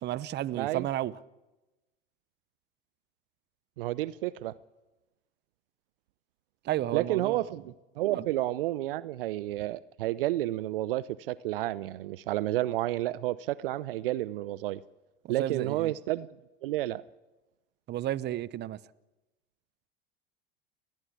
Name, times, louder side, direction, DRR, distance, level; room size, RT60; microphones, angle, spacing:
voice 1, 0.0-1.2 6.6-7.4 8.1-8.3 15.2-15.9 17.9-18.8, right 13 dB, 35° right, 0.8 m, -32 dB
voice 2, 3.8-4.5 6.9-7.6 8.0-14.8 15.3-16.3 16.6-17.0, right 15 dB, 70° right, 0.6 m, -30 dB
30.0 x 10.5 x 8.5 m
hypercardioid pair, 75°, 29 cm